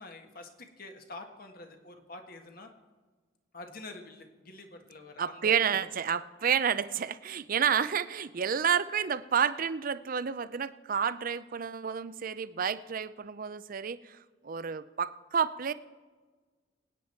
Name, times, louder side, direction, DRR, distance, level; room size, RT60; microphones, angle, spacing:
voice 1, 0.0-2.7 3.5-5.9, left 2 dB, 50° left, 4 dB, 1.6 m, -47 dB
voice 2, 5.2-14.2 14.4-15.7, right 7 dB, 50° right, 15 dB, 0.5 m, -30 dB
24.0 x 9.2 x 4.5 m, 1.4 s
head